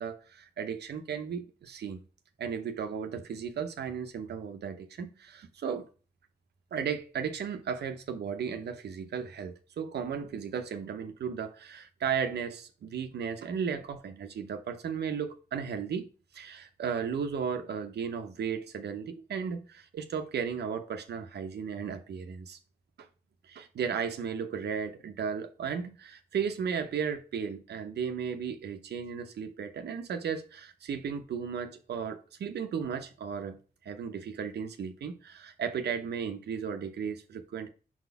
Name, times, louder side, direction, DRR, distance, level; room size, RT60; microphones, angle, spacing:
voice 1, 0.0-2.0 2.4-5.9 6.7-22.6 23.0-23.1 23.4-33.6 33.8-37.7, right 7 dB, 90° right, 0.8 m, -35 dB
4.5 x 4.2 x 5.6 m
cardioid pair, 55°, 17 cm